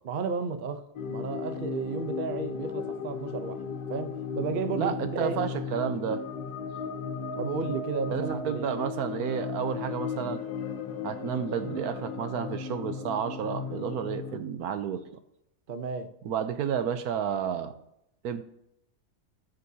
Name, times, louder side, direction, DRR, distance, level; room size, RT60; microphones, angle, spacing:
voice 1, 0.0-3.6 3.9-5.4 7.3-8.7 15.7-16.1, right 5 dB, 45° right, 8 dB, 0.7 m, -33 dB
sound 1, 1.0-14.4, left 6 dB, 80° left, 1.4 m, -36 dB
voice 2, 4.7-6.2 8.1-10.4 11.0-15.0 16.2-17.7 18.2-18.4, right 8 dB, 75° right, 10 dB, 1.1 m, -31 dB
17.5 x 6.5 x 2.8 m, 0.81 s
omnidirectional pair, 1.7 m